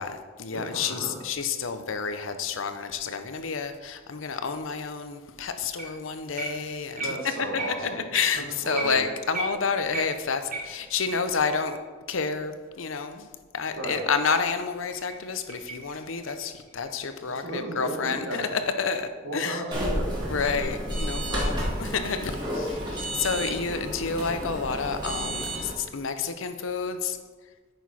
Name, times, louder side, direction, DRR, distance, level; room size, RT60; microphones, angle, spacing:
voice 1, 0.0-7.2 7.5-11.8 12.1-13.3 13.5-19.6 20.3-27.2, left 5 dB, 80° left, 9 dB, 0.7 m, -30 dB
voice 2, 0.5-1.2 7.0-8.1 8.4-9.0 13.8-14.1 17.3-18.5 19.2-20.7, right 2 dB, 80° right, 1 dB, 1.7 m, -34 dB
sound 1, 5.8-6.0 6.4-11.3 11.7-11.8 12.3-12.4 12.9-13.0 14.7-17.5 20.3-21.8, right 2 dB, 40° right, 1.4 m, -38 dB
sound 2, 19.7-25.7, equal, 20° right, 2.1 m, -31 dB
9.1 x 6.2 x 4.2 m, 1.4 s
head